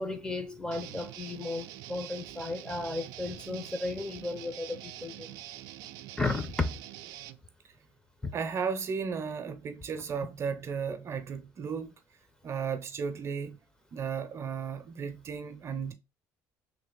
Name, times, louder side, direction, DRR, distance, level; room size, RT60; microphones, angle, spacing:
voice 1, 0.0-5.4 6.2-6.8 8.2-8.3, left 2 dB, 10° left, 0.6 m, -34 dB
Guitar, 0.7-7.4, right 14 dB, 80° right, 0.3 m, -45 dB
voice 2, 8.3-11.9 12.4-13.6 13.9-15.9, right 6 dB, 45° right, 0.7 m, -34 dB
3.2 x 2.9 x 3.8 m
supercardioid pair, 100°, 7 cm